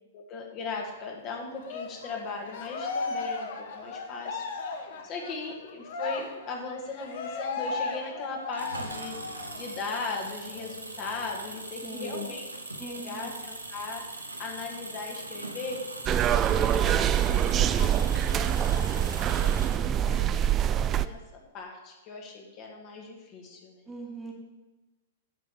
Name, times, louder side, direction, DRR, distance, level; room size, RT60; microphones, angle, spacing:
voice 1, 0.1-4.4 4.7-12.5 12.8-14.0 14.4-15.8 16.7-20.5 20.9-21.2 21.5-23.8, left 4 dB, 35° left, 0 dB, 1.9 m, -38 dB
Cheering, 1.6-9.6 10.0-10.1 10.5-11.5, left 4 dB, 50° left, 1.2 m, -36 dB
Engine, 8.5-20.2, right 2 dB, 80° right, 1.1 m, -41 dB
voice 2, 11.8-12.3 12.8-13.3 19.7-20.4 23.9-24.3, right 1 dB, 10° right, -1 dB, 1.8 m, -41 dB
sound 1, 16.1-21.1, right 10 dB, 25° right, 0.3 m, -25 dB
11.0 x 5.3 x 6.8 m, 1.1 s
figure-of-eight pair, 105°, 0 cm